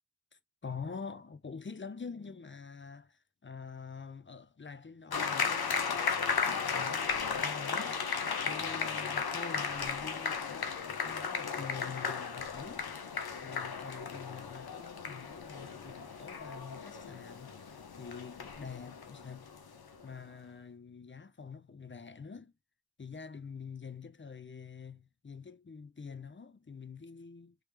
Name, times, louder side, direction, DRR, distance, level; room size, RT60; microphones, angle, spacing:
voice 1, 0.6-8.2 8.5-12.9 13.3-19.5 20.0-22.5 23.0-27.6, left 5 dB, 35° left, 0.5 m, -46 dB
sound 1, 5.1-20.1, left 6 dB, 85° left, 0.6 m, -35 dB
3.2 x 3.1 x 3.2 m
wide cardioid pair, 40°, 37 cm